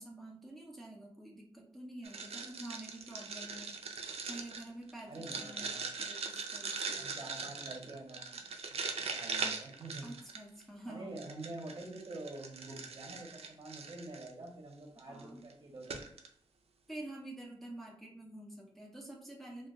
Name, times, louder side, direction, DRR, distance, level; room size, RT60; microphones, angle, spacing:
voice 1, 0.0-3.8 4.2-7.1 10.0-11.1 15.1-15.4 16.9-19.7, right 1 dB, ahead, -2 dB, 0.5 m, -48 dB
sound 1, 2.0-10.6 11.2-14.3 15.0-15.2 15.5-15.6 15.8-16.3, right 4 dB, 75° right, 0.4 m, -41 dB
voice 2, 5.0-5.9 6.9-8.4 8.7-10.1 10.9-16.0, right 2 dB, 45° right, 0 dB, 0.7 m, -47 dB
2.2 x 2.1 x 3.5 m, 0.65 s
wide cardioid pair, 110°, 10 cm